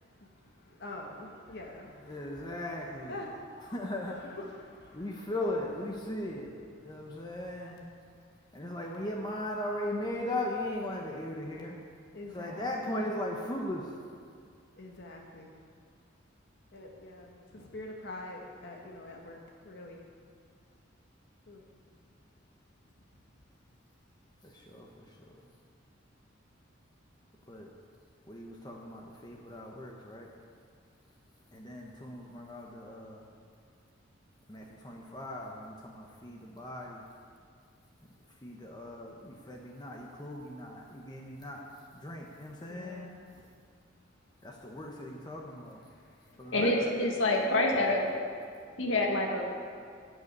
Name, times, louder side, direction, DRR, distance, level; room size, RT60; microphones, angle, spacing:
voice 1, 0.6-2.7 3.1-3.8 4.2-5.2 12.1-13.0 14.8-15.6 16.7-19.4 19.6-20.0 21.5-21.6 42.7-43.2 45.9-46.0, left 2 dB, 60° left, 0 dB, 1.4 m, -45 dB
voice 2, 2.0-3.2 3.7-4.2 4.9-6.6 6.8-7.8 8.5-11.8 12.3-14.0 24.4-25.2 25.4-25.5 27.5-27.7 28.2-30.3 31.5-33.3 34.5-37.0 38.4-41.6 41.9-43.1 44.4-45.8 46.4-46.9 47.7-47.9, left 1 dB, 20° left, -1 dB, 1.1 m, -38 dB
voice 3, 46.5-48.1 48.8-49.4, left 2 dB, 80° left, 1 dB, 1.9 m, -27 dB
12.5 x 6.7 x 8.8 m, 2.2 s
head